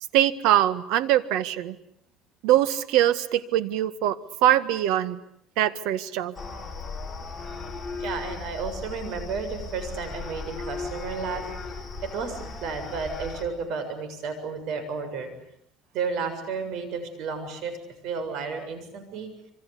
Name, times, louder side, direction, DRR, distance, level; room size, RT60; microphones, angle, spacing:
voice 1, 0.1-1.8 2.4-4.2 4.4-5.2 5.6-6.3, right 12 dB, 80° right, 13 dB, 1.7 m, -22 dB
sound 1, 6.4-13.4, left 4 dB, 10° left, 4.9 m, -36 dB
voice 2, 8.0-11.7 12.0-15.3 15.9-17.7 18.0-19.3, right 5 dB, 65° right, 9 dB, 7.3 m, -32 dB
27.5 x 25.0 x 8.5 m, 0.70 s
cardioid pair, 150°, 0 cm